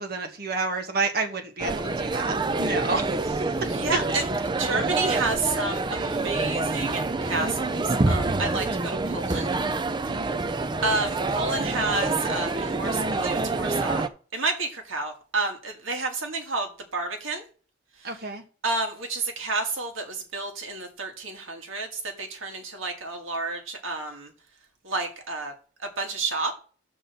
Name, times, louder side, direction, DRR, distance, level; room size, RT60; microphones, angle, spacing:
voice 1, 0.0-3.5 10.1-10.5 18.0-18.4, right 3 dB, 50° right, 1.4 m, -30 dB
sound 1, 1.6-14.1, right 3 dB, 20° right, 0.4 m, -27 dB
voice 2, 3.7-4.2 4.6-9.5 10.8-16.7 16.9-17.4 18.6-24.3 24.8-25.5 25.8-26.6, right 3 dB, 75° right, 1.9 m, -30 dB
10.0 x 4.0 x 6.9 m
head